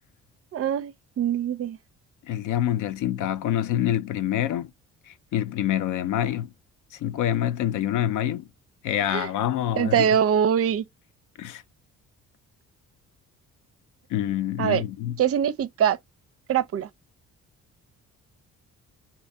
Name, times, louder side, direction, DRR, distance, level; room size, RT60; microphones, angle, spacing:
voice 1, 0.5-1.8 9.1-9.3 9.8-10.8 14.6-14.8 15.2-16.0 16.5-16.9, right 9 dB, 50° right, 0.5 m, -23 dB
voice 2, 2.3-4.7 5.1-6.5 7.0-8.5 8.8-10.1 11.4-11.6 14.1-15.2, left 11 dB, 80° left, 0.5 m, -26 dB
2.7 x 2.6 x 3.3 m
cardioid pair, 90°, 30 cm